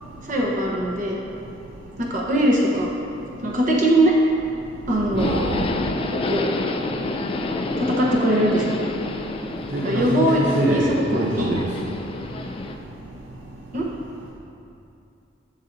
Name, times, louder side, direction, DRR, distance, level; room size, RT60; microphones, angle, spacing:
voice 1, 0.2-1.2 2.0-2.9 3.4-4.1 4.9-5.3 6.1-6.5 7.8-8.7 9.8-10.8 11.1-11.5 13.7-13.9, right 1 dB, 45° right, -3 dB, 0.9 m, -21 dB
voice 2, 5.1-5.6 9.7-11.6, right 1 dB, 65° right, -3 dB, 0.6 m, -24 dB
Subway metro underground, 5.2-12.7, left 2 dB, 30° left, 0.3 m, -29 dB
7.4 x 6.5 x 2.7 m, 2.6 s
head